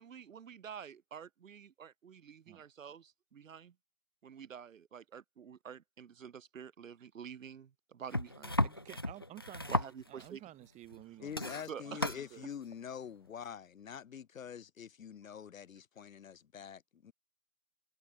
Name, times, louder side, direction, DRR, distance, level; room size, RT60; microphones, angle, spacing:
voice 1, 0.0-3.7 4.2-8.5 9.7-10.4 11.7-12.2, right 7 dB, 70° right, 3.5 m, -48 dB
sound 1, 8.1-10.4 10.8-11.0 11.3-12.2 13.3-13.4, left 1 dB, 20° left, 0.4 m, -35 dB
voice 2, 8.6-11.4 11.8-12.5, right 15 dB, 15° right, 6.3 m, -52 dB
voice 3, 11.2-17.1, left 8 dB, 75° left, 1.8 m, -46 dB
hypercardioid pair, 160°, 40 cm